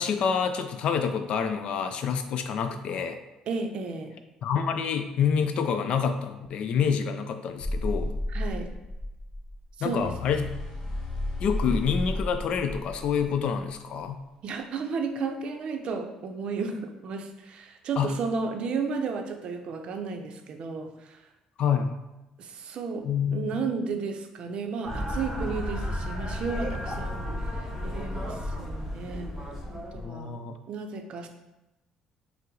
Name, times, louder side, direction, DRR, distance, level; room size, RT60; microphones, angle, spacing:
voice 1, 0.0-3.2 4.4-8.1 9.8-10.5 11.4-14.2 18.0-18.2 21.6-22.0 23.0-23.6 30.0-30.6, left 7 dB, 60° left, 7 dB, 0.4 m, -27 dB
voice 2, 3.5-4.1 8.3-8.7 9.8-10.1 14.4-21.2 22.4-27.3 27.6-29.3 29.7-30.4 30.7-31.3, right 4 dB, 55° right, 5 dB, 0.5 m, -33 dB
sound 1, 7.6-13.7, left 1 dB, 35° left, 1.3 m, -32 dB
sound 2, 24.8-30.0, left 1 dB, 5° right, 1.3 m, -33 dB
5.4 x 2.0 x 3.8 m, 0.99 s
cardioid pair, 120°, 2 cm